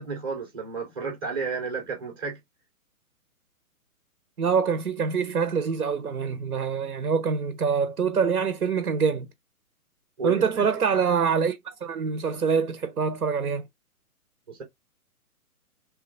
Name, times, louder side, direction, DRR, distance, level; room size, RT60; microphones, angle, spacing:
voice 1, 0.0-2.4 10.2-10.7 14.5-14.6, right 4 dB, 15° right, 0.5 m, -32 dB
voice 2, 4.4-9.3 10.2-13.6, right 6 dB, 85° right, 0.7 m, -25 dB
3.0 x 2.2 x 3.5 m
figure-of-eight pair, 125°, 44 cm